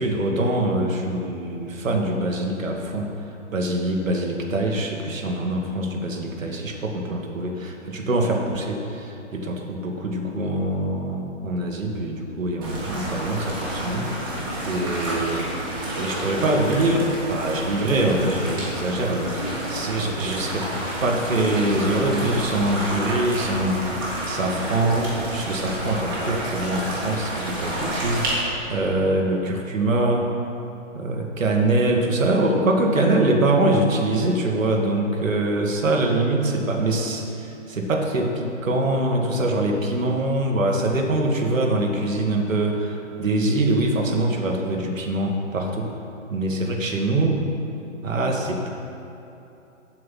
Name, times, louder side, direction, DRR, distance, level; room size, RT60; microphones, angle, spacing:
voice 1, 0.0-3.1 3.5-15.6 15.9-20.7 21.0-23.8 24.3-30.3 30.9-45.9 46.3-47.4 48.0-48.7, right 2 dB, 90° right, 1 dB, 1.7 m, -24 dB
sound 1, 12.6-28.3, right 1 dB, 20° right, 1.3 m, -29 dB
7.9 x 7.8 x 5.6 m, 2.9 s
hypercardioid pair, 180°, 39 cm